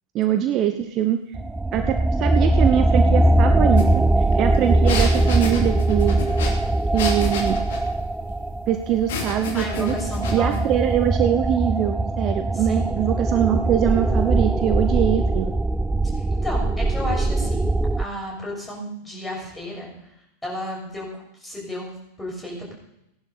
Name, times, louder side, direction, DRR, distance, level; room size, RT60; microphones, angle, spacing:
voice 1, 0.1-1.2 1.7-4.0 4.4-6.1 6.9-7.6 8.7-9.9 10.3-15.5, right 11 dB, 35° right, 7 dB, 0.9 m, -22 dB
sound 1, 1.3-18.0, right 2 dB, 5° right, 0.4 m, -21 dB
sound 2, 3.8-3.9 4.2-7.9 9.1-10.6, left 5 dB, 55° left, 2.7 m, -31 dB
voice 2, 9.5-10.6 12.5-13.0 16.3-17.7 18.0-19.9 20.4-22.7, equal, 10° left, -2 dB, 6.7 m, -32 dB
17.0 x 11.0 x 4.2 m, 0.85 s
figure-of-eight pair, 90°, 0 cm